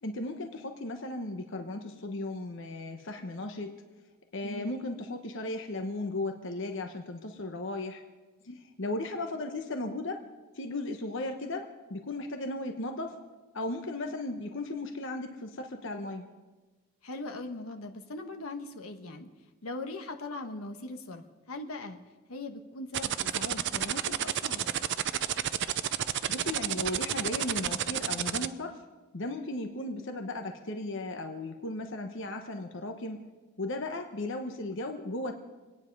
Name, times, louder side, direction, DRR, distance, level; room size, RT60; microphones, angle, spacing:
voice 1, 0.0-3.8 4.3-8.0 8.8-10.2 10.5-13.2 13.5-16.3 26.3-28.8 29.1-33.3 33.6-35.4, left 2 dB, 60° left, 4 dB, 1.1 m, -36 dB
voice 2, 17.0-19.3 19.6-22.0 22.3-24.8, left 2 dB, 80° left, 5 dB, 1.3 m, -40 dB
sound 1, 22.9-28.5, right 10 dB, 55° right, 0.5 m, -30 dB
26.0 x 9.7 x 5.4 m, 1.2 s
head